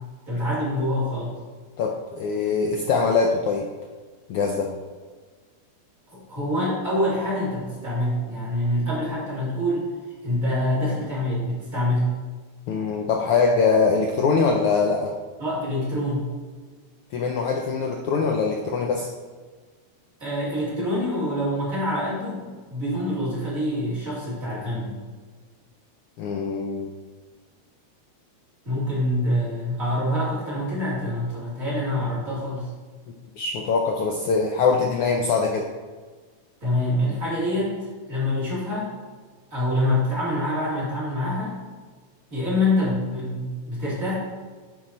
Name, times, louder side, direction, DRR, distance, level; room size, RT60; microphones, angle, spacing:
voice 1, 0.3-1.4 6.1-9.9 10.2-12.1 15.4-16.3 20.2-25.0 28.6-32.7 36.6-38.9 39.5-41.6 42.3-44.2, left 1 dB, 30° right, -8 dB, 2.7 m, -26 dB
voice 2, 1.8-3.7 4.3-4.7 12.7-15.1 17.1-19.1 26.2-26.9 33.4-35.7, left 4 dB, 85° left, 2 dB, 1.2 m, -23 dB
9.3 x 4.9 x 4.2 m, 1.4 s
omnidirectional pair, 3.3 m